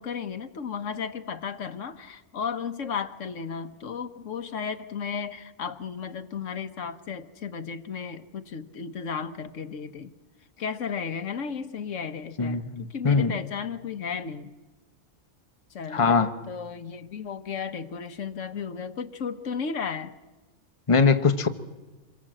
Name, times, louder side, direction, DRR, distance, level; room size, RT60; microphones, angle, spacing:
voice 1, 0.0-10.1 10.6-14.5 15.7-16.2 16.5-20.1, left 6 dB, 80° left, 9 dB, 1.4 m, -34 dB
voice 2, 12.4-13.3 15.9-16.3 20.9-21.5, left 5 dB, 25° left, 8 dB, 1.1 m, -22 dB
26.5 x 22.0 x 7.6 m, 1.2 s
omnidirectional pair, 1.3 m